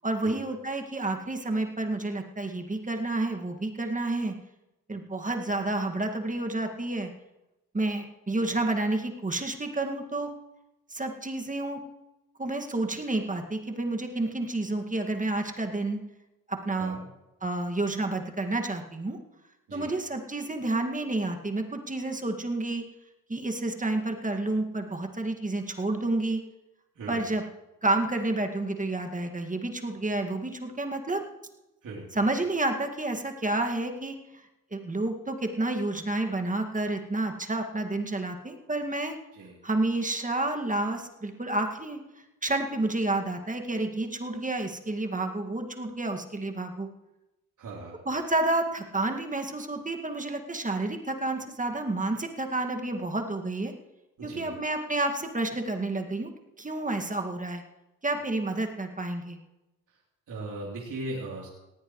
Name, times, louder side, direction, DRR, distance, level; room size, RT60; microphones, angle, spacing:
voice 1, 0.0-4.3 4.9-7.1 7.7-10.3 10.9-11.8 12.4-16.0 16.5-17.0 17.4-19.2 19.7-22.8 23.3-26.4 27.1-27.4 27.8-31.2 32.1-34.1 34.7-39.1 39.6-42.0 42.4-46.9 48.1-53.7 54.2-56.3 56.6-57.6 58.0-59.4, right 2 dB, 25° right, 4 dB, 2.1 m, -30 dB
voice 2, 47.6-48.0 54.2-54.5 60.3-61.5, right 2 dB, 65° right, -4 dB, 3.6 m, -38 dB
18.5 x 16.5 x 3.2 m, 0.99 s
supercardioid pair, 55°, 34 cm